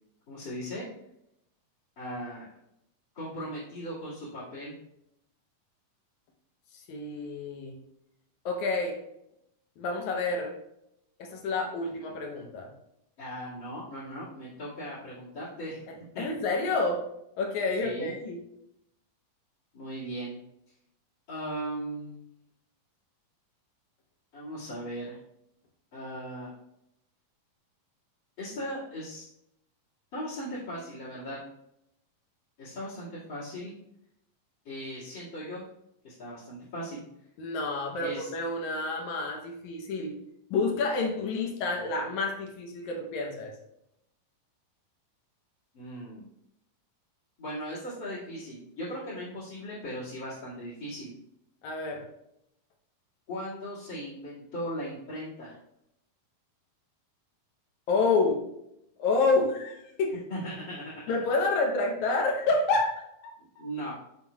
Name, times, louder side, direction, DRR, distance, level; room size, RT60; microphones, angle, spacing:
voice 1, 0.3-0.8 2.0-2.5 3.1-4.7 13.2-15.8 16.1-16.3 17.8-18.1 19.7-20.4 21.3-22.1 24.3-25.2 25.9-26.5 28.4-29.3 30.1-31.4 32.6-33.7 34.6-35.6 36.0-37.0 37.9-38.3 45.7-46.3 47.4-51.1 53.3-55.6 60.3-61.0 63.4-63.9, equal, 35° left, -12 dB, 2.7 m, -38 dB
voice 2, 6.9-7.8 8.5-9.0 9.8-10.5 11.2-12.7 16.2-17.0 17.4-18.4 37.4-40.1 40.5-43.5 51.6-52.0 57.9-58.4 59.0-60.1 61.1-63.1, left 3 dB, 70° left, 1 dB, 2.0 m, -28 dB
7.5 x 7.2 x 2.4 m, 0.79 s
omnidirectional pair, 4.1 m